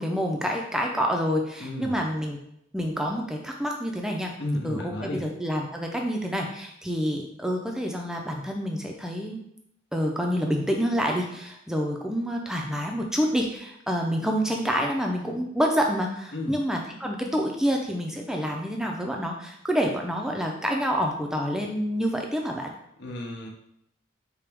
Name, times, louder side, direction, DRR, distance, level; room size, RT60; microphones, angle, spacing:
voice 1, 0.0-2.4 2.7-4.3 4.6-9.4 9.9-22.7, equal, 5° right, 1 dB, 0.5 m, -27 dB
voice 2, 1.6-2.0 4.4-5.2 16.3-16.6 23.0-23.5, left 1 dB, 60° left, 0 dB, 0.8 m, -32 dB
4.6 x 2.9 x 3.5 m, 0.75 s
head